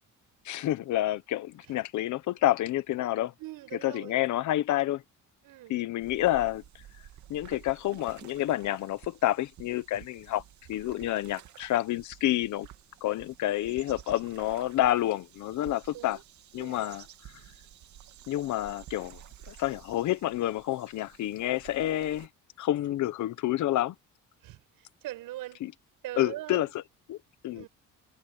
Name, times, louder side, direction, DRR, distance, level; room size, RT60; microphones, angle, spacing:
voice 1, 0.4-3.3 3.8-5.0 5.7-6.6 7.3-10.4 10.7-12.7 13.0-16.2 16.5-17.1 18.3-19.2 19.5-22.3 22.6-23.9 25.6-25.7 26.2-26.8 27.1-27.2 27.4-27.6, left 14 dB, 60° left, 1.1 m, -29 dB
voice 2, 3.4-4.2 5.4-5.7 15.9-16.2 16.6-16.9 24.4-25.6 26.0-26.7 27.5-27.7, right 16 dB, 90° right, 6.7 m, -42 dB
sound 1, 6.0-22.3, right 12 dB, 60° right, 2.5 m, -52 dB
cardioid pair, 175°, 33 cm